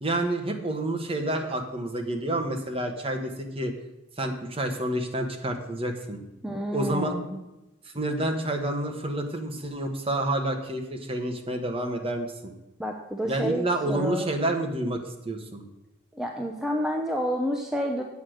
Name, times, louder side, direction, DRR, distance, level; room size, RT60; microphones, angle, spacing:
voice 1, 0.0-3.7 4.2-6.2 6.7-7.2 7.8-12.5 13.2-15.6, right 1 dB, 30° right, 3 dB, 1.2 m, -29 dB
voice 2, 6.4-7.4 12.8-14.3 16.1-18.0, equal, 5° right, 1 dB, 0.7 m, -29 dB
8.4 x 7.6 x 6.4 m, 0.94 s
head